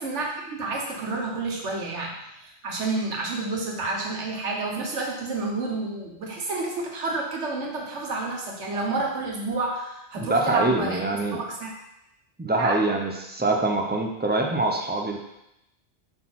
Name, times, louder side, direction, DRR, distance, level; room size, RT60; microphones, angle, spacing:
voice 1, 0.0-11.7 12.6-12.8, right 3 dB, 85° right, -1 dB, 1.4 m, -30 dB
voice 2, 10.2-11.4 12.4-15.2, right 2 dB, 15° right, 2 dB, 0.4 m, -24 dB
5.5 x 4.1 x 4.3 m, 0.85 s
omnidirectional pair, 1.2 m